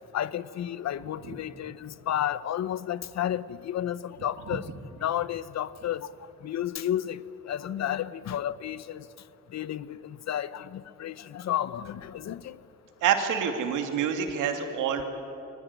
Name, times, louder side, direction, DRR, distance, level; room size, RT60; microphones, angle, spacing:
voice 1, 0.1-4.7 5.0-6.1 6.4-9.1 9.5-12.6, left 11 dB, 60° left, 17 dB, 0.9 m, -32 dB
voice 2, 13.0-15.0, right 8 dB, 90° right, 5 dB, 2.6 m, -27 dB
23.5 x 19.5 x 9.7 m, 2.9 s
cardioid pair, 90°, 30 cm